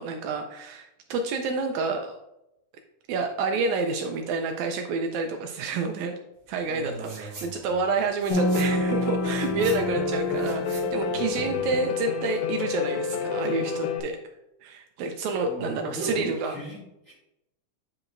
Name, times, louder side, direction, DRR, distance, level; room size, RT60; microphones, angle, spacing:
voice 1, 0.0-2.2 3.1-6.1 6.5-14.2 14.6-16.6, right 3 dB, 80° right, 5 dB, 1.8 m, -29 dB
voice 2, 6.6-7.7 9.4-9.7 11.1-11.7 15.4-17.1, right 2 dB, 35° left, -8 dB, 1.3 m, -37 dB
sound 1, 6.9-7.5 7.8-11.8, right 3 dB, 45° right, 1.9 m, -45 dB
sound 2, 8.3-11.5, right 1 dB, 60° left, 0.6 m, -29 dB
Piano, 8.4-14.0, left 6 dB, 80° left, 1.8 m, -29 dB
8.5 x 4.8 x 2.5 m, 0.88 s
omnidirectional pair, 3.6 m